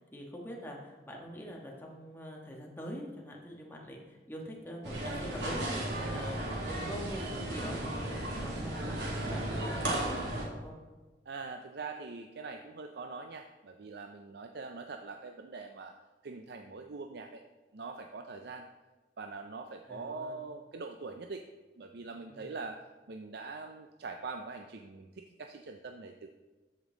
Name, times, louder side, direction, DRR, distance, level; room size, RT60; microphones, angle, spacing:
voice 1, 0.0-10.8 19.9-20.4 22.3-22.5, equal, 10° left, -1 dB, 1.4 m, -44 dB
sound 1, 4.8-10.4, right 1 dB, 80° right, 2.1 m, -35 dB
voice 2, 11.3-15.9 16.2-17.4 17.7-18.7 19.2-21.4 21.8-26.3, right 4 dB, 65° right, 5 dB, 0.5 m, -43 dB
13.5 x 5.4 x 3.8 m, 1.3 s
head